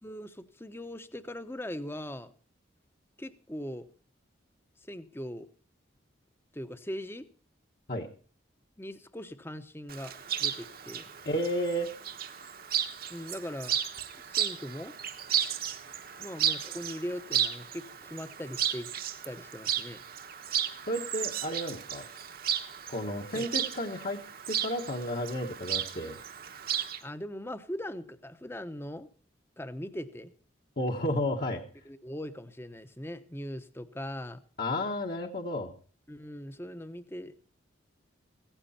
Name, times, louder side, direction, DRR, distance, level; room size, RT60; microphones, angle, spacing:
voice 1, 0.0-2.3 3.2-3.9 4.8-5.5 6.5-7.3 8.8-10.1 10.4-11.0 13.1-13.7 14.2-14.9 16.2-18.9 19.2-20.0 23.3-23.5 27.0-29.1 29.6-30.3 31.8-34.4 36.1-37.3, equal, 10° left, 11 dB, 0.9 m, -40 dB
Chirp tweet, 9.9-27.0, right 9 dB, 50° right, 1.2 m, -34 dB
voice 2, 11.2-11.9 20.9-22.0 22.9-24.2 24.5-26.2 30.8-31.6 34.6-35.7, left 1 dB, 50° left, 1 dB, 1.4 m, -32 dB
16.5 x 14.5 x 4.3 m, 0.40 s
head